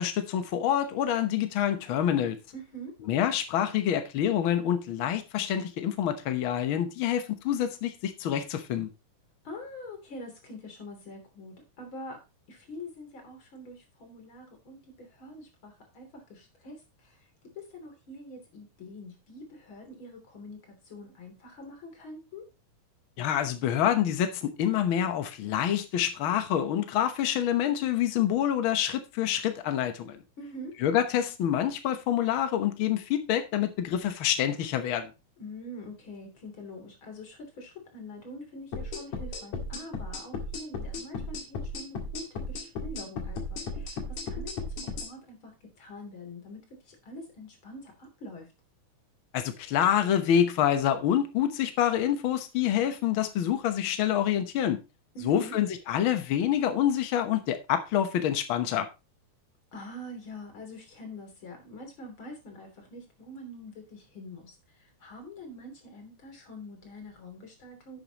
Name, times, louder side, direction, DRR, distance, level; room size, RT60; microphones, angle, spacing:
voice 1, 0.0-2.4 3.0-8.9 23.2-30.2 30.8-35.1 49.3-54.8 55.2-58.9, left 10 dB, 80° left, 1.1 m, -27 dB
voice 2, 2.5-3.0 9.4-12.2 12.5-17.3 17.6-22.4 30.4-30.8 35.4-44.7 45.0-48.5 55.1-55.6 59.7-68.0, left 1 dB, 40° left, 3.8 m, -45 dB
sound 1, 38.7-45.1, left 3 dB, 60° left, 3.1 m, -35 dB
10.5 x 8.5 x 2.9 m
omnidirectional pair, 3.8 m